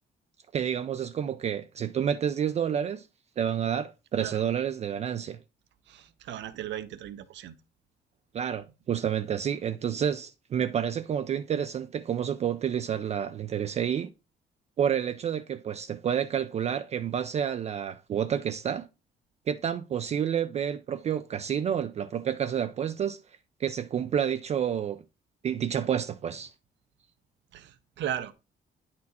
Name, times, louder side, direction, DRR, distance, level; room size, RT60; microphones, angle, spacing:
voice 1, 0.5-3.1 3.4-5.4 8.3-14.1 14.8-18.9 19.5-23.2 23.6-25.0 25.4-26.5, right 8 dB, 35° right, 0.4 m, -29 dB
voice 2, 5.9-7.6 27.5-28.3, right 11 dB, 85° right, 0.9 m, -36 dB
9.5 x 4.3 x 4.1 m
cardioid pair, 175°, 18 cm